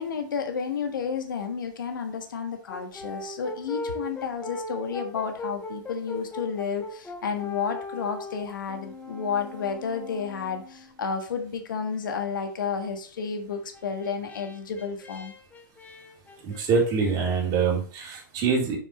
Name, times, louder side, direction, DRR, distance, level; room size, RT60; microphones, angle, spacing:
voice 1, 0.0-15.3, left 6 dB, 70° left, 6 dB, 1.4 m, -31 dB
Brass instrument, 2.7-11.0 13.5-17.2, left 2 dB, 15° left, 1.1 m, -39 dB
voice 2, 16.4-18.8, right 5 dB, 40° right, -2 dB, 3.6 m, -24 dB
7.5 x 6.4 x 3.2 m, 0.41 s
figure-of-eight pair, 100°, 11 cm